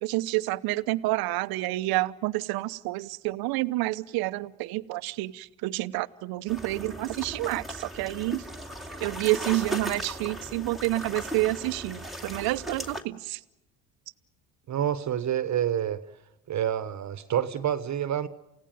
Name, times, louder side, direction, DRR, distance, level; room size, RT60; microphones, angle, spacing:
voice 1, 0.0-8.4 9.0-13.4, right 19 dB, 70° right, 0.9 m, -29 dB
sound 1, 6.5-13.0, right 1 dB, ahead, 2.5 m, -37 dB
voice 2, 14.7-16.0 16.5-18.3, right 10 dB, 45° right, 1.3 m, -28 dB
29.0 x 16.5 x 9.2 m
supercardioid pair, 70°, 38 cm